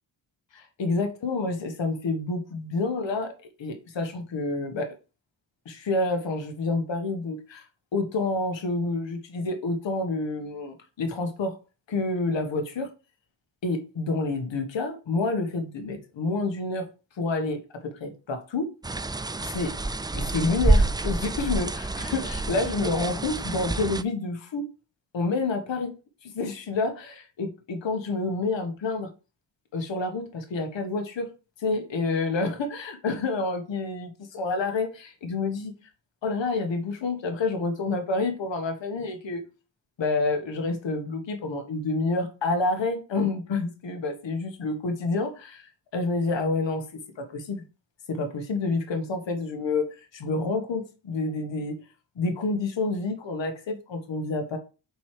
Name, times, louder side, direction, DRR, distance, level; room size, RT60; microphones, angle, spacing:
voice 1, 0.5-3.3 3.6-4.9 5.6-7.7 7.9-11.6 11.9-12.9 13.6-16.9 17.2-18.7 19.4-19.7 20.1-24.7 25.1-25.9 26.2-29.1 29.7-31.3 31.6-35.7 36.2-39.4 40.0-46.8 47.2-47.6 48.1-51.7 52.2-54.6, left 3 dB, 70° left, 1.5 m, -28 dB
sound 1, 18.8-24.0, right 2 dB, 10° right, 0.4 m, -27 dB
5.4 x 4.5 x 4.9 m
cardioid pair, 55°, 45 cm